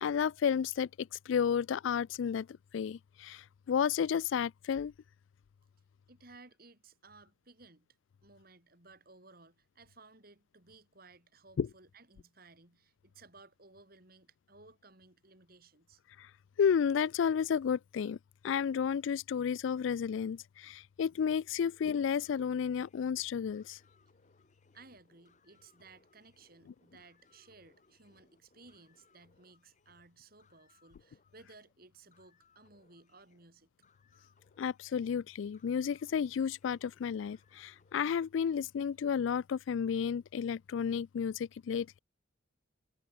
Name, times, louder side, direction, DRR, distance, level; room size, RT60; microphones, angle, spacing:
voice 1, 0.0-2.5 2.7-4.9 11.6-11.7 16.2-16.3 16.6-18.2 18.4-23.8 34.6-41.9, left 7 dB, 75° left, 0.3 m, -32 dB
voice 2, 6.1-7.9 8.2-16.0 24.7-33.7, right 3 dB, 50° right, 4.3 m, -59 dB
sound 1, 21.2-38.2, left 3 dB, 40° left, 4.6 m, -70 dB
head